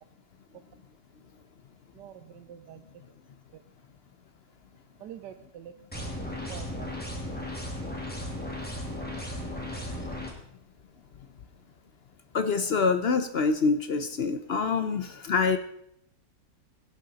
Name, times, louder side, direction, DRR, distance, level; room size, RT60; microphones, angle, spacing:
voice 1, 1.9-2.8 3.5-3.6 5.0-5.7 6.5-6.9, right 10 dB, 75° right, 9 dB, 1.3 m, -45 dB
sound 1, 5.9-10.3, left 1 dB, 5° left, 2.1 m, -35 dB
voice 2, 12.3-15.6, left 4 dB, 70° left, 9 dB, 0.6 m, -26 dB
17.0 x 8.6 x 4.0 m, 0.71 s
omnidirectional pair, 1.9 m